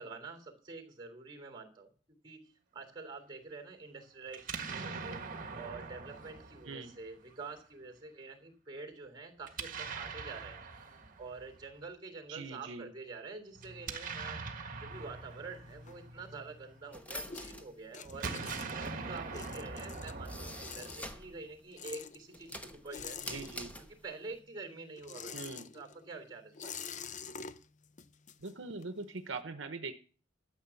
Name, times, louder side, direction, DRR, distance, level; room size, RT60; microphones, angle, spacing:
voice 1, 0.0-5.2 5.5-10.7 11.2-14.4 14.8-18.3 18.7-23.2 23.9-26.7, right 3 dB, 25° right, 5 dB, 3.2 m, -47 dB
Explosion, 4.3-7.4 9.4-11.7 13.6-17.0 18.0-21.4, right 4 dB, 45° right, 1.6 m, -43 dB
voice 2, 12.3-12.9 23.3-23.7 25.3-25.7 28.4-29.9, right 3 dB, 70° right, 8 dB, 0.9 m, -42 dB
sound 1, 14.9-16.5 16.9-24.1 24.3-29.0, left 6 dB, 40° left, 0.6 m, -48 dB
sound 2, 16.9-21.4 21.7-24.3, equal, 10° left, 1.1 m, -46 dB
13.0 x 7.1 x 7.1 m, 0.41 s
head